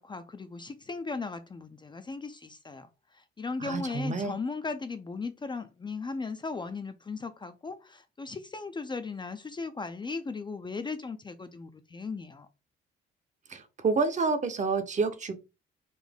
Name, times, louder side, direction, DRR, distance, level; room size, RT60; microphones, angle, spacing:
voice 1, 0.0-2.9 3.1-12.5, left 4 dB, 25° left, 0.4 m, -37 dB
voice 2, 3.6-4.4 13.5-15.3, right 4 dB, 35° right, 0.7 m, -28 dB
4.0 x 2.6 x 3.5 m
cardioid pair, 90°, 20 cm